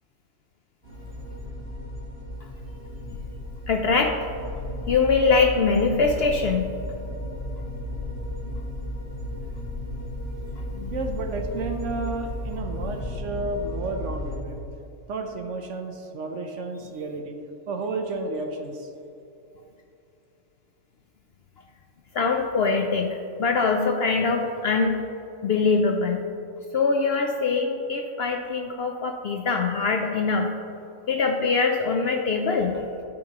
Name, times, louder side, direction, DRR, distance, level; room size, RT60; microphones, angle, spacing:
sound 1, 0.8-14.4, left 1 dB, 40° right, 1.8 m, -34 dB
voice 1, 3.7-4.1 4.9-6.6 10.7-10.9 22.1-23.1 23.4-25.0 25.4-26.2 26.7-30.5 31.1-32.8, left 4 dB, 65° left, 2 dB, 0.6 m, -23 dB
voice 2, 10.9-14.6 15.1-17.4 17.7-18.9, right 3 dB, 65° right, 5 dB, 0.9 m, -31 dB
13.0 x 5.3 x 2.9 m, 2.8 s
omnidirectional pair, 1.5 m